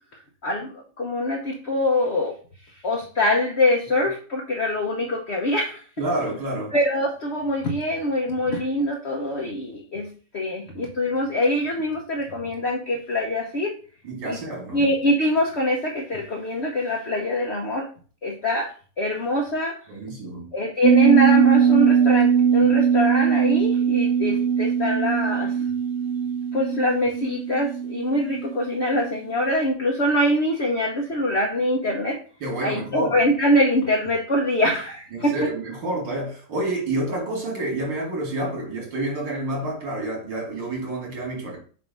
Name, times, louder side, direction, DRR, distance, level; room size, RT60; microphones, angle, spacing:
voice 1, 0.4-2.3 2.7-5.8 6.7-13.8 14.2-14.4 14.7-17.9 18.2-19.8 20.5-25.7 26.5-32.2 32.6-35.5, left 1 dB, 45° left, -1 dB, 1.0 m, -24 dB
voice 2, 6.0-6.7 14.0-14.9 19.9-20.5 32.4-33.2 35.1-41.6, right 1 dB, 80° right, -2 dB, 3.2 m, -29 dB
sound 1, 20.8-29.1 29.5-29.6, right 7 dB, 40° right, 1.9 m, -20 dB
6.7 x 2.8 x 5.3 m, 0.41 s
omnidirectional pair, 2.0 m